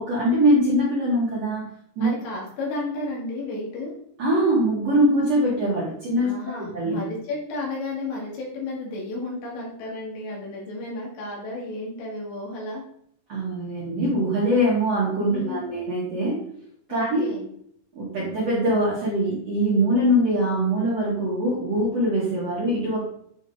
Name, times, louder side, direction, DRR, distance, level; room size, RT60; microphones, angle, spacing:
voice 1, 0.0-1.7 1.9-2.1 4.2-6.3 6.6-7.0 13.3-16.5 16.9-17.3 17.9-23.0, right 1 dB, 60° right, -7 dB, 1.7 m, -22 dB
voice 2, 2.0-3.9 6.2-12.9 15.3-15.7 16.9-17.5, left 2 dB, 80° left, -3 dB, 4.3 m, -33 dB
9.0 x 3.6 x 3.9 m, 0.68 s
omnidirectional pair, 5.1 m